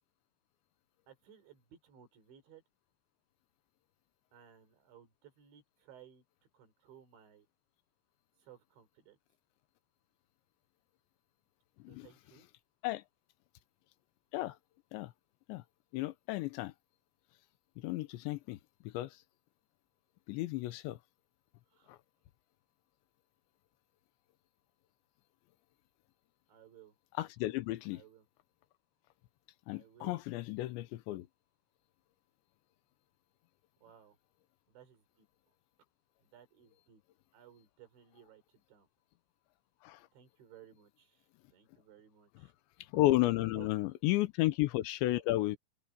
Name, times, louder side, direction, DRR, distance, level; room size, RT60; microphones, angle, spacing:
voice 1, 1.1-2.6 4.3-6.2 6.5-7.5 8.4-9.2 11.9-12.5 21.7-22.0 26.5-26.9 27.9-28.3 29.7-30.2 33.8-34.2 34.7-35.3 36.2-37.0 37.3-38.9 40.1-42.5 43.0-43.7 44.1-44.2, right 9 dB, 85° right, 6.4 m, -59 dB
voice 2, 15.9-16.7 17.8-18.6 18.8-19.2 20.3-21.0 21.9-22.0 27.2-28.0 29.7-31.3 39.8-40.1 42.9-45.6, left 17 dB, 85° left, 3.2 m, -33 dB
omnidirectional pair, 5.1 m